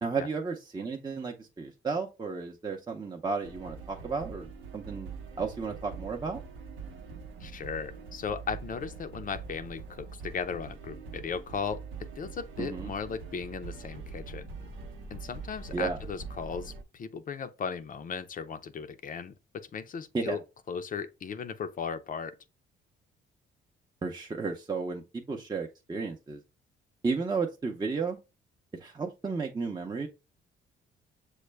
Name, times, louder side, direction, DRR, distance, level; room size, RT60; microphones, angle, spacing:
voice 1, 0.0-5.1 5.4-6.4 12.6-12.9 15.7-16.0 20.1-20.4 24.0-26.4 27.0-28.2 28.7-30.1, right 4 dB, 20° right, 0.6 m, -33 dB
sound 1, 3.4-16.8, right 4 dB, 90° right, 0.8 m, -43 dB
voice 2, 7.4-11.8 12.2-14.5 15.1-20.4 20.7-22.4, left 6 dB, 45° left, 0.5 m, -37 dB
6.4 x 2.1 x 3.3 m
cardioid pair, 90°, 20 cm